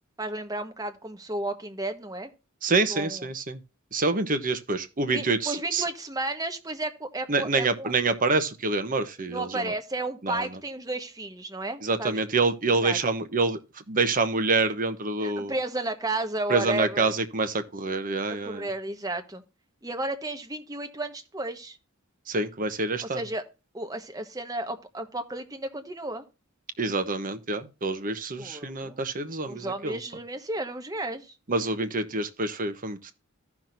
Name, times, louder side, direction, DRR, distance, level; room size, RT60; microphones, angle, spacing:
voice 1, 0.2-2.3 2.9-3.3 5.1-7.9 9.3-12.2 12.8-13.0 15.2-17.1 18.3-19.4 19.8-21.8 23.0-23.4 23.7-26.2 28.4-29.0 29.4-31.3, right 2 dB, 15° right, 1.2 m, -33 dB
voice 2, 2.6-3.6 3.9-5.8 7.3-9.7 10.2-10.5 11.8-13.6 13.9-15.5 16.5-18.7 22.3-23.2 26.8-30.0 31.5-33.1, right 3 dB, 40° right, 1.0 m, -27 dB
15.5 x 6.0 x 2.6 m
head